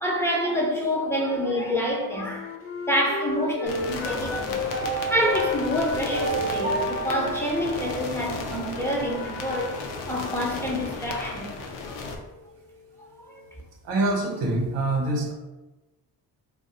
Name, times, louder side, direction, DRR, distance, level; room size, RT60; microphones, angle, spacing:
voice 1, 0.0-2.5 2.9-4.6 5.1-9.7 10.0-11.5 11.8-12.0 13.3-13.4, equal, 5° left, 0.9 m, -27 dB
Wind instrument woodwind instrument, 1.8-4.7 5.2-9.0, left 3 dB, 30° left, 0.4 m, -34 dB
sound 1, 3.7-12.2, left 3 dB, 85° left, 0.5 m, -34 dB
sound 2, 4.7-8.9, right 3 dB, 25° right, 0.8 m, -32 dB
voice 2, 13.8-15.3, right 2 dB, 90° right, 0.7 m, -25 dB
2.6 x 2.2 x 3.8 m
hypercardioid pair, 50°, 43 cm